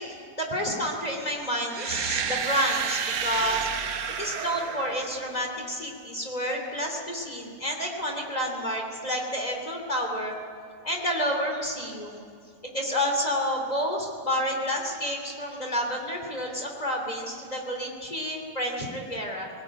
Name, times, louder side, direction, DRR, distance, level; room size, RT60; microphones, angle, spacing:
voice 1, 0.0-3.7 4.2-10.3 10.8-12.2 12.7-19.5, equal, 10° left, 2 dB, 2.4 m, -29 dB
sound 1, 1.7-5.6, right 7 dB, 55° right, 2.0 m, -31 dB
20.0 x 18.5 x 9.0 m, 2.4 s
omnidirectional pair, 4.2 m